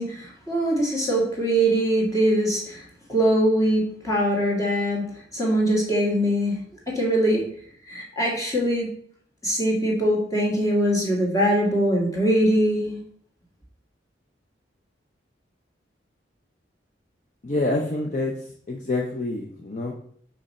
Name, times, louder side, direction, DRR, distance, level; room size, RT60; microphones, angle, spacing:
voice 1, 0.0-5.0 5.3-6.6 6.9-7.5 7.9-8.9 9.4-13.0, right 1 dB, 20° left, -3 dB, 1.8 m, -22 dB
voice 2, 17.4-18.3 18.7-19.9, left 2 dB, 40° left, 0 dB, 0.7 m, -26 dB
5.4 x 5.2 x 4.2 m, 0.62 s
head